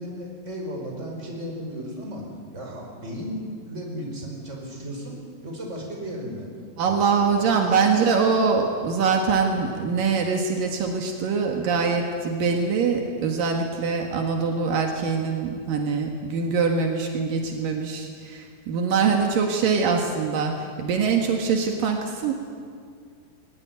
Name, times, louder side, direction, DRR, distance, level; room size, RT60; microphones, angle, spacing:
voice 1, 0.0-2.2 2.5-6.5 6.9-7.9, equal, 20° right, -1 dB, 5.3 m, -35 dB
voice 2, 6.8-22.3, right 5 dB, 75° right, 2 dB, 3.4 m, -23 dB
21.5 x 20.0 x 9.5 m, 2.2 s
omnidirectional pair, 4.0 m